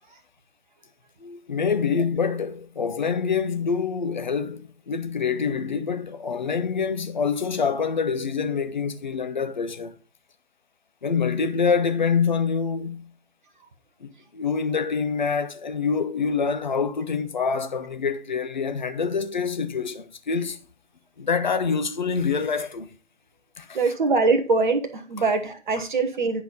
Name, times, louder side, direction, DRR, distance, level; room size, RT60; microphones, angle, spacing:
voice 1, 1.2-10.0 11.0-13.1 14.0-20.6 21.2-22.9 23.6-23.8, left 5 dB, 40° left, 0.8 m, -26 dB
voice 2, 23.7-26.4, right 3 dB, 40° right, 1.2 m, -23 dB
9.7 x 4.4 x 5.2 m
figure-of-eight pair, 145°, 38 cm